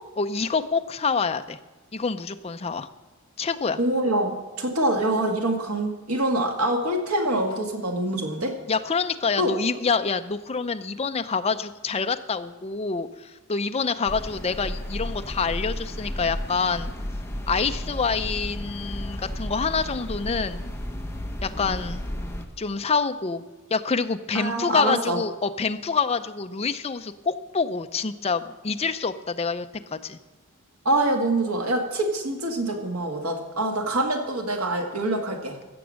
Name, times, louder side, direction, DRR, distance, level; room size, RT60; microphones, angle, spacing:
voice 1, 0.2-1.6 1.9-2.9 3.4-3.8 8.7-16.9 17.5-20.7 21.4-22.1 22.6-23.4 23.7-30.2, left 5 dB, 30° left, 9 dB, 0.5 m, -27 dB
voice 2, 3.8-8.5 9.4-9.5 24.3-25.2 30.9-35.6, right 1 dB, 80° right, 3 dB, 1.9 m, -25 dB
sound 1, 14.1-22.5, left 1 dB, 10° left, 0.9 m, -33 dB
15.5 x 7.0 x 6.3 m, 1.2 s
head